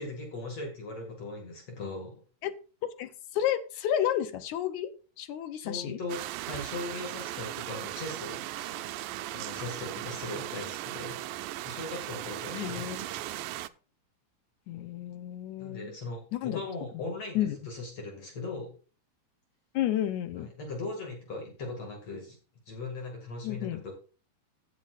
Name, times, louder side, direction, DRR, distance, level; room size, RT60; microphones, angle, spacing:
voice 1, 0.0-2.2 5.5-8.9 9.3-11.2 11.6-13.1 15.6-18.7 20.3-22.4 22.7-23.9, left 2 dB, 50° left, 1 dB, 3.0 m, -39 dB
voice 2, 3.0-4.9 5.2-6.0 12.5-13.0 14.7-15.9 16.3-16.6 17.4-17.6 19.7-20.5 23.4-23.8, left 11 dB, 75° left, 12 dB, 1.9 m, -31 dB
sound 1, 6.1-13.7, right 15 dB, 90° right, 2.3 m, -38 dB
15.5 x 8.4 x 2.4 m, 0.37 s
omnidirectional pair, 3.9 m